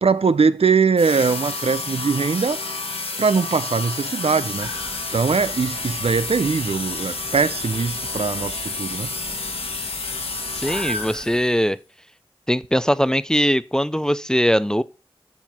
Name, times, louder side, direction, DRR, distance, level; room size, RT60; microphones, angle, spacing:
voice 1, 0.0-2.6 3.2-4.7 5.1-9.1, right 5 dB, 80° right, 0.4 m, -21 dB
sound 1, 1.0-11.5, left 3 dB, 90° left, 1.4 m, -30 dB
sound 2, 4.6-11.4, right 1 dB, 25° right, 1.9 m, -39 dB
voice 2, 10.5-11.8 12.5-14.8, equal, 5° left, 0.3 m, -20 dB
7.4 x 5.7 x 5.5 m
wide cardioid pair, 45°, 10 cm